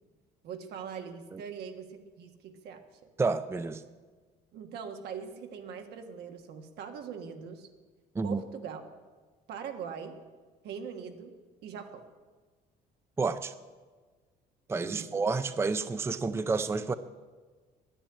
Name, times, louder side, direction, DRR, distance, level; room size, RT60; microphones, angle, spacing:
voice 1, 0.4-2.8 4.5-7.7 8.2-8.8 9.5-10.2 10.6-11.3 11.6-12.0 14.8-15.1, right 7 dB, 75° right, 1.6 m, -41 dB
voice 2, 3.2-3.8 8.1-8.4 13.2-13.5 14.7-16.9, right 4 dB, 15° right, 0.5 m, -30 dB
10.5 x 10.0 x 8.9 m
cardioid pair, 110°, 17 cm